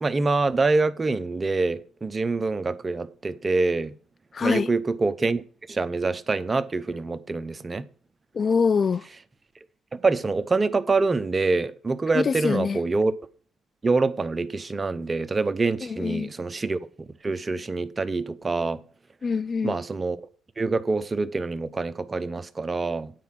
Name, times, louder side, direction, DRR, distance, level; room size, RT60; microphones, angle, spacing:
voice 1, 0.0-3.9 4.4-5.4 5.7-7.8 9.9-13.1 13.8-16.8 17.2-18.8 19.6-20.2 20.6-23.1, right 3 dB, 25° right, 0.7 m, -25 dB
voice 2, 4.3-4.7 8.3-9.0 12.1-12.8 15.8-16.3 19.2-19.8, left 5 dB, 45° left, 0.3 m, -24 dB
9.3 x 4.7 x 5.9 m
cardioid pair, 90°, 0 cm